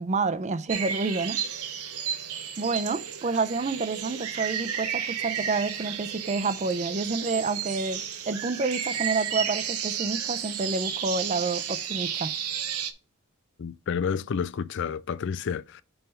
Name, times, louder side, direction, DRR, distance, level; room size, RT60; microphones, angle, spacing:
voice 1, 0.0-1.4 2.6-12.3, right 3 dB, 30° right, 0.5 m, -29 dB
sound 1, 0.7-12.9, right 8 dB, 90° right, 0.9 m, -32 dB
voice 2, 13.6-15.8, left 6 dB, 55° left, 0.4 m, -30 dB
5.5 x 4.4 x 5.4 m
head